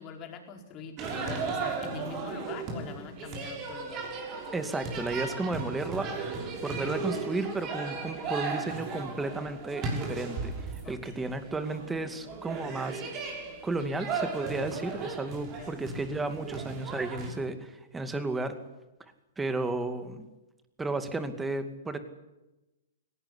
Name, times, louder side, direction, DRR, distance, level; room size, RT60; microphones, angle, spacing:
voice 1, 0.0-4.1 10.8-11.2 15.6-15.8, left 5 dB, 35° left, 3 dB, 4.7 m, -43 dB
sound 1, 1.0-17.3, right 4 dB, 35° right, 6.2 m, -36 dB
voice 2, 4.5-6.1 6.6-13.2 13.6-18.6 19.4-20.3 20.8-22.0, right 2 dB, 10° right, 9 dB, 2.4 m, -33 dB
19.0 x 18.0 x 9.9 m, 1.0 s
hypercardioid pair, 130°, 0 cm